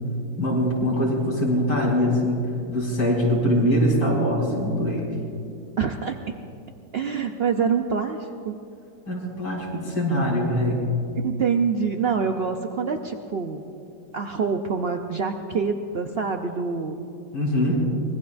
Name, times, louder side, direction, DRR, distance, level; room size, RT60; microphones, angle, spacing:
voice 1, 0.4-5.1 9.1-10.8 17.3-17.9, equal, 80° left, -4 dB, 5.0 m, -23 dB
voice 2, 5.8-6.4 6.9-8.6 11.2-13.6 14.1-17.0, right 5 dB, 90° right, 5 dB, 0.5 m, -26 dB
24.5 x 21.5 x 2.6 m, 2.6 s
omnidirectional pair, 1.9 m